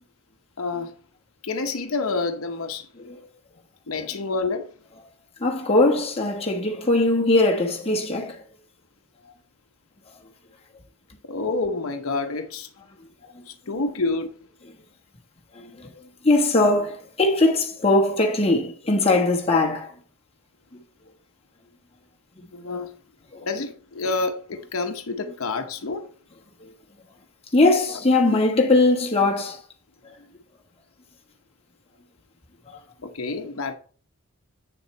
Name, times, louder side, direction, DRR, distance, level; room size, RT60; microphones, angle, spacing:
voice 1, 0.6-0.9 1.4-2.9 3.9-4.7 11.2-12.7 13.5-14.3 22.5-22.9 23.4-26.1 33.0-33.7, left 3 dB, 75° left, 0.9 m, -28 dB
voice 2, 5.4-8.4 13.3-13.4 13.7-13.8 15.5-15.9 16.2-19.9 23.3-23.5 26.6-26.7 27.5-29.6 32.7-32.8, left 2 dB, 25° left, 1.3 m, -21 dB
8.8 x 6.8 x 3.2 m
head